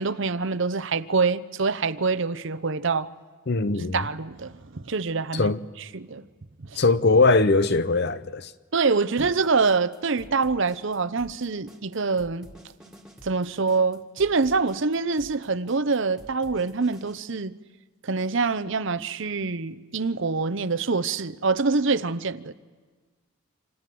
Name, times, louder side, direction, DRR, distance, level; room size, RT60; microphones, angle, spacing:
voice 1, 0.0-3.1 3.8-5.5 5.9-6.2 6.6-6.8 8.7-12.5 13.2-17.5 18.0-22.5, right 4 dB, 60° right, 0.8 m, -25 dB
voice 2, 3.5-4.0 5.3-5.6 6.8-8.5, left 3 dB, 50° left, 0.7 m, -21 dB
sound 1, 9.2-17.2, equal, 5° right, 2.0 m, -49 dB
27.0 x 27.0 x 7.7 m
head